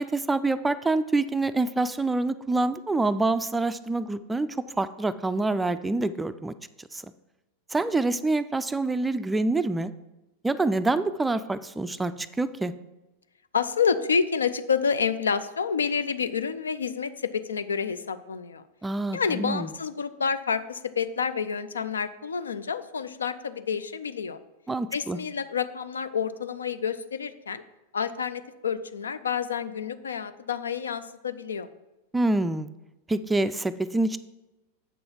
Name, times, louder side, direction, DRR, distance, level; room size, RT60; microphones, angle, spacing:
voice 1, 0.0-4.5 4.8-6.5 6.9-7.0 7.7-9.9 10.4-12.1 12.4-12.7 18.8-19.7 24.7-25.2 32.1-32.7 33.1-34.2, right 2 dB, 10° right, 12 dB, 0.3 m, -26 dB
voice 2, 13.5-18.6 19.1-24.4 24.9-27.6 27.9-31.7, left 6 dB, 70° left, 13 dB, 0.4 m, -29 dB
7.8 x 6.2 x 4.6 m, 1.0 s
figure-of-eight pair, 90°, 0 cm